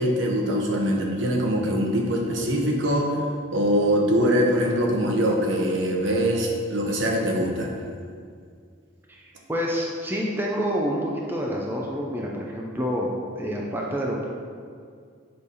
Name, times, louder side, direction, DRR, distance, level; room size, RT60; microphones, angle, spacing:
voice 1, 0.0-3.2 3.5-7.7, equal, 70° right, 0 dB, 1.0 m, -23 dB
voice 2, 9.1-14.2, equal, 10° right, -2 dB, 0.6 m, -28 dB
6.7 x 3.3 x 5.5 m, 2.1 s
head